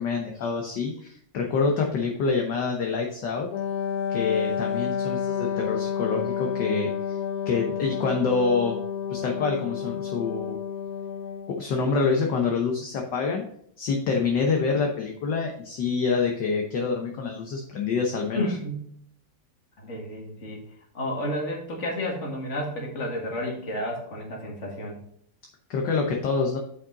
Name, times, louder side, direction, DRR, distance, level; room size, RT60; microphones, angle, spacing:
voice 1, 0.0-3.5 4.1-7.2 7.5-8.8 9.1-10.6 11.5-13.5 13.8-18.5 25.7-26.6, left 4 dB, 60° left, 2 dB, 1.5 m, -26 dB
Wind instrument woodwind instrument, 3.5-11.6, left 8 dB, 85° left, 0.8 m, -30 dB
voice 2, 18.3-18.9 19.8-20.6 20.9-25.0, left 1 dB, 35° left, 0 dB, 2.1 m, -31 dB
8.5 x 5.3 x 3.9 m, 0.66 s
omnidirectional pair, 2.3 m